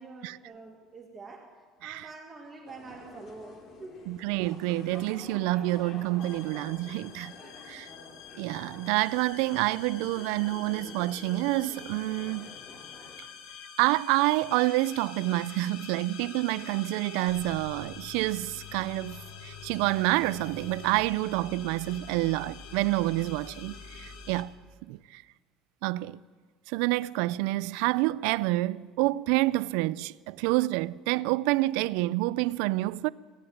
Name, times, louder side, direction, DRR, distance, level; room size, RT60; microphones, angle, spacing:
voice 1, 0.0-1.5 1.8-4.1, right 3 dB, 20° right, 1.9 m, -46 dB
sound 1, 2.7-13.2, left 3 dB, 45° left, 2.7 m, -48 dB
voice 2, 4.1-7.3 7.7-7.9 8.4-12.5 13.8-24.5 24.8-25.2 25.8-26.2 26.7-33.1, right 19 dB, 80° right, 0.3 m, -28 dB
sound 2, 6.2-24.4, left 6 dB, 75° left, 1.7 m, -46 dB
16.5 x 8.7 x 9.3 m
supercardioid pair, 115°, 0 cm